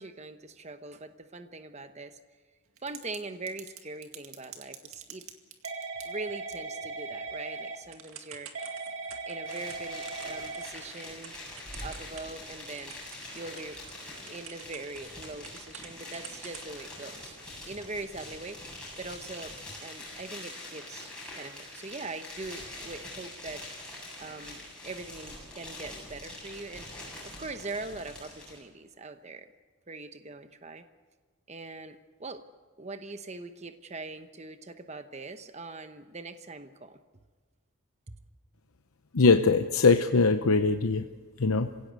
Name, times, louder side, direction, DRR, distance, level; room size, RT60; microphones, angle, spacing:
voice 1, 0.0-2.2 2.8-5.3 6.0-8.5 9.3-11.3 11.8-13.0 13.3-13.8 14.3-17.4 17.7-23.6 24.2-27.0 27.2-29.5 29.9-30.8 31.5-32.4 32.8-37.0 38.1-38.2, right 3 dB, 30° right, 9 dB, 1.0 m, -42 dB
Typing / Telephone, 2.8-3.2 3.5-12.5 12.8-16.7, right 4 dB, 70° right, 2.1 m, -40 dB
sound 1, 9.4-28.6, left 1 dB, 5° left, 7.7 m, -44 dB
voice 2, 39.1-41.0 41.4-41.7, left 4 dB, 75° left, 7 dB, 0.8 m, -22 dB
26.0 x 17.0 x 8.1 m, 1.4 s
head